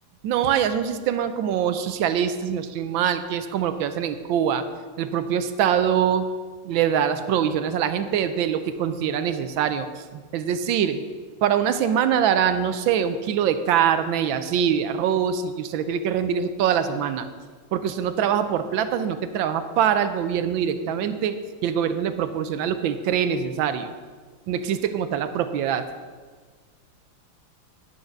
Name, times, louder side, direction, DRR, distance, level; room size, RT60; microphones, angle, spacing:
voice 1, 0.2-4.6 5.0-6.3 6.6-11.0 11.4-17.3 17.7-23.9 24.5-25.9, right 8 dB, 85° right, 10 dB, 1.4 m, -24 dB
10.5 x 6.4 x 5.8 m, 1.5 s
omnidirectional pair, 2.1 m